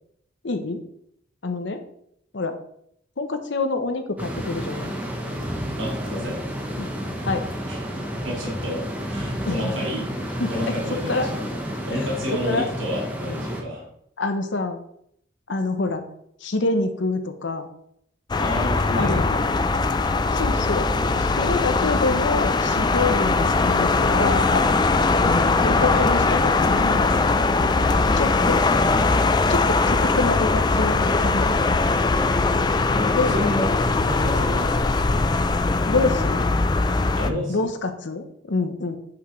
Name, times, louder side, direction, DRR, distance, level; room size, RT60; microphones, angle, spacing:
voice 1, 0.4-0.8 1.4-1.8 2.3-2.6 3.2-4.9 6.8-6.9 7.2-7.4 9.5-9.8 10.4-10.8 11.1-11.3 12.5-12.6 14.2-14.8 15.5-16.0 16.4-17.7 19.0-19.4 20.3-20.9 21.2-24.7 25.2-27.1 28.2-28.7 29.5-31.6 33.2-33.4 35.9-36.5 37.5-39.0, left 3 dB, 65° left, 8 dB, 0.8 m, -26 dB
sound 1, 4.2-13.6, equal, 5° right, 0.9 m, -30 dB
voice 2, 5.8-6.4 7.7-7.8 8.2-10.1 10.5-11.4 11.9-13.9 18.4-19.7 25.9-26.0 28.0-28.7 32.9-33.7 34.1-34.9 37.1-37.7, left 1 dB, 75° right, -3 dB, 2.4 m, -30 dB
sound 2, 18.3-37.3, left 3 dB, 20° left, 0.3 m, -21 dB
7.9 x 5.9 x 3.1 m, 0.71 s
head